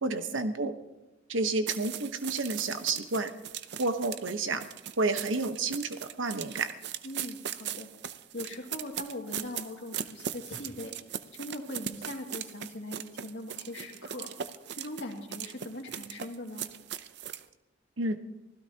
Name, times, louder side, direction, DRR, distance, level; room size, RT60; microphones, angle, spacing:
voice 1, 0.0-0.7 1.3-3.3 3.8-4.6 5.0-6.7 18.0-18.2, right 3 dB, 90° right, 9 dB, 1.1 m, -30 dB
sound 1, 1.7-17.4, right 9 dB, 60° right, 0.6 m, -39 dB
voice 2, 7.0-7.9 8.3-11.0 11.3-14.3 14.7-16.7, left 1 dB, 70° left, 0 dB, 2.3 m, -40 dB
25.0 x 16.0 x 2.9 m, 1.1 s
head